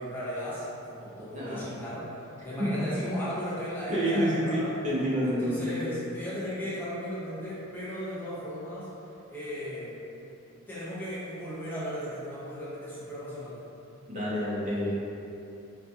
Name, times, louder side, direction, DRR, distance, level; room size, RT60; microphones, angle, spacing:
voice 1, 0.0-4.7 5.2-8.9 9.3-10.0 10.7-13.7, equal, 10° left, -11 dB, 0.7 m, -36 dB
voice 2, 3.9-5.5 14.1-14.9, equal, 35° right, -8 dB, 0.6 m, -28 dB
4.0 x 2.5 x 2.3 m, 2.8 s
head